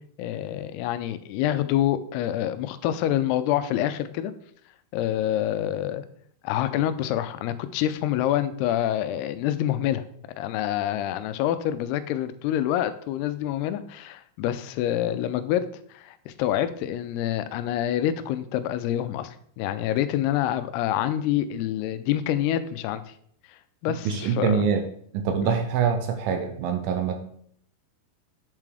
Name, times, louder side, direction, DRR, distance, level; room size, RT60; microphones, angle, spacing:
voice 1, 0.2-4.3 4.9-6.1 6.4-10.0 10.4-15.7 15.9-23.0 23.8-24.7 25.4-25.6, left 12 dB, 85° left, 12 dB, 2.5 m, -26 dB
voice 2, 24.1-24.8 25.1-27.2, right 6 dB, 80° right, 6 dB, 2.3 m, -24 dB
8.4 x 7.1 x 3.3 m, 0.63 s
omnidirectional pair, 4.7 m